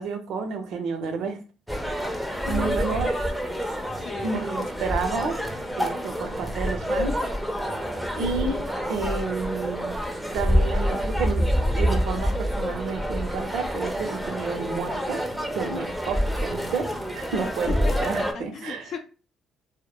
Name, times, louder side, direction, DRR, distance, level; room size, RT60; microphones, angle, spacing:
voice 1, 0.0-1.4 2.4-3.1 4.2-5.4 5.8-7.1 8.1-8.6 8.9-10.0 10.3-11.5 11.8-15.2 15.6-18.9, right 5 dB, 70° right, 6 dB, 0.5 m, -30 dB
sound 1, 1.7-18.3, equal, ahead, 0.5 m, -27 dB
voice 2, 2.5-4.3 17.7-19.0, left 5 dB, 60° left, 4 dB, 0.5 m, -37 dB
2.1 x 2.1 x 2.9 m, 0.34 s
supercardioid pair, 65°, 0 cm